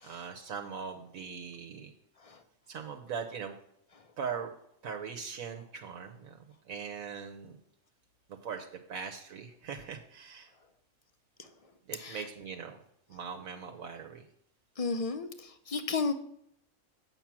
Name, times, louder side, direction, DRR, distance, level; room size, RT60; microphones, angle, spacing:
voice 1, 0.0-1.9 2.7-3.6 4.2-4.5 4.8-7.6 8.4-10.5 11.9-12.8 13.1-14.2, right 6 dB, 80° right, 4 dB, 1.3 m, -40 dB
voice 2, 11.9-12.3 14.8-16.1, left 4 dB, 45° left, 9 dB, 0.4 m, -34 dB
7.7 x 5.9 x 7.4 m, 0.72 s
omnidirectional pair, 1.4 m